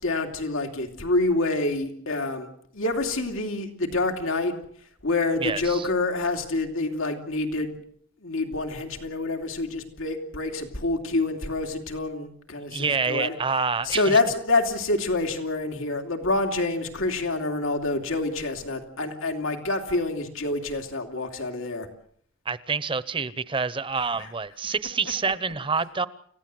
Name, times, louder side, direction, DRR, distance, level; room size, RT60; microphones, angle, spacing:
voice 1, 0.0-2.5 2.7-4.5 5.0-7.7 8.2-13.4 13.8-21.9 24.2-24.3, left 2 dB, 90° left, 2.8 m, -27 dB
voice 2, 5.4-5.9 12.7-14.2 22.5-26.1, right 5 dB, 25° right, 0.9 m, -27 dB
29.5 x 16.0 x 7.8 m
head